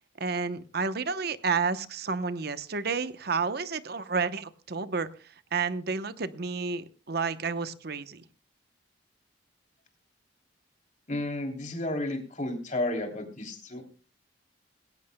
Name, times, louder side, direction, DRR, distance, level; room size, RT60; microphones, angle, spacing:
voice 1, 0.2-5.1 5.5-8.2, right 5 dB, 55° right, 12 dB, 0.9 m, -30 dB
voice 2, 11.1-13.8, left 1 dB, 40° left, 4 dB, 3.1 m, -32 dB
20.0 x 17.5 x 2.2 m, 0.36 s
head